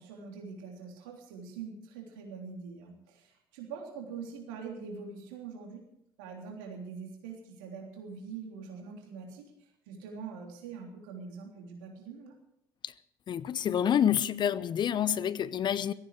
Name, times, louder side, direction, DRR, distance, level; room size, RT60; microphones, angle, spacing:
voice 1, 0.0-5.8 6.2-12.3, right 5 dB, 75° right, 3.3 m, -44 dB
voice 2, 13.3-15.9, left 9 dB, 45° left, 0.8 m, -28 dB
17.0 x 14.5 x 4.9 m
hypercardioid pair, 55°, 11 cm